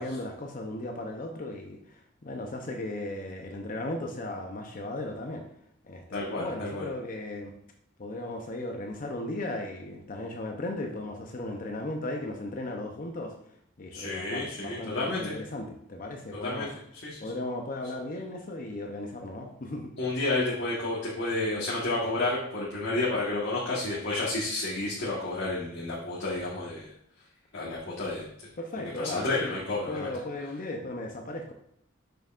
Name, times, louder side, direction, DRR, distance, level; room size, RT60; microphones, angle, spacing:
voice 1, 0.0-5.5 5.8-7.5 8.0-13.3 13.8-16.7 17.2-19.9 28.6-29.6 29.9-31.5, left 2 dB, 45° left, 2 dB, 0.7 m, -36 dB
voice 2, 6.1-6.9 13.9-15.4 16.4-16.7 17.0-17.3 20.0-26.9 27.5-28.3 29.0-30.1, left 2 dB, 65° left, -6 dB, 1.5 m, -30 dB
6.7 x 6.4 x 2.5 m, 0.73 s
head